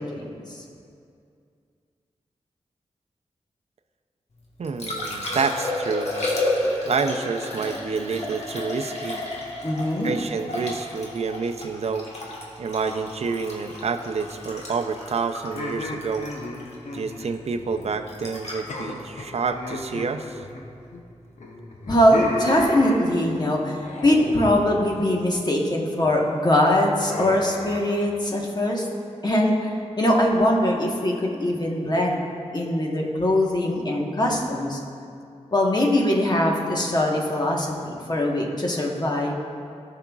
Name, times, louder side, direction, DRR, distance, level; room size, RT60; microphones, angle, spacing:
voice 1, 0.1-0.6 9.6-10.1 21.9-28.9 29.2-32.2 32.5-34.8 35.5-39.3, left 1 dB, 35° left, -1 dB, 1.2 m, -22 dB
Liquid, 4.4-20.5 23.3-23.4, left 1 dB, 65° left, 1.4 m, -32 dB
voice 2, 4.6-6.1 6.9-9.2 10.0-12.1 12.6-16.3 16.9-20.4, right 5 dB, 65° right, 7 dB, 0.5 m, -28 dB
VG Voice - Golem, 15.5-18.0 18.2-18.4 18.7-21.0 21.4-23.4 23.8-24.4 24.8-25.3 25.7-26.1 27.1-27.8, left 2 dB, 85° left, 0.8 m, -34 dB
14.5 x 5.7 x 2.4 m, 2.4 s
wide cardioid pair, 70°, 12 cm